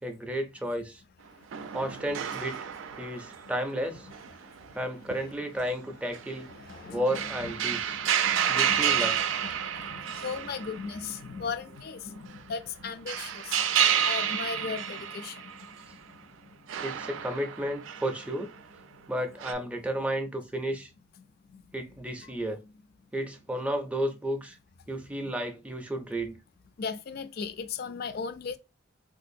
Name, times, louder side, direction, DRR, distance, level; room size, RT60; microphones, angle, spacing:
voice 1, 0.0-1.0 1.7-2.5 3.0-4.1 4.7-6.5 6.9-8.0 8.5-9.2 16.8-18.5 19.1-20.9 21.7-22.6 23.1-24.6 24.9-26.3, right 1 dB, 5° right, 0.5 m, -32 dB
sound 1, 1.5-4.7 5.1-5.2 5.6-5.7 6.1-11.1 11.4-11.5 12.7-15.7 16.7-18.4 19.4-19.5, right 9 dB, 70° right, 0.4 m, -30 dB
voice 2, 4.4-5.2 6.5-15.4 15.8-16.0 16.5-16.6 17.0-17.1 19.0-19.1 21.5-21.6 22.2-22.3 26.8-28.6, left 5 dB, 50° left, 0.4 m, -38 dB
3.7 x 2.5 x 2.6 m
head